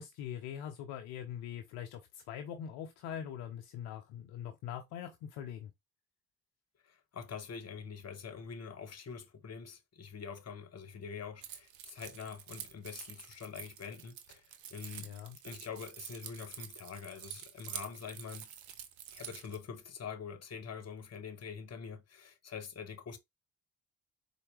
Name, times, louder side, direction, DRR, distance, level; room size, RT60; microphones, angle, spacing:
voice 1, 0.0-5.7 15.0-15.4, left 9 dB, 65° left, 0.7 m, -43 dB
voice 2, 6.8-15.1 15.4-18.5 19.1-23.2, left 6 dB, 40° left, 1.1 m, -45 dB
Keys jangling, 11.4-19.6, right 10 dB, 75° right, 0.7 m, -48 dB
4.2 x 2.3 x 3.3 m
figure-of-eight pair, 40°, 41 cm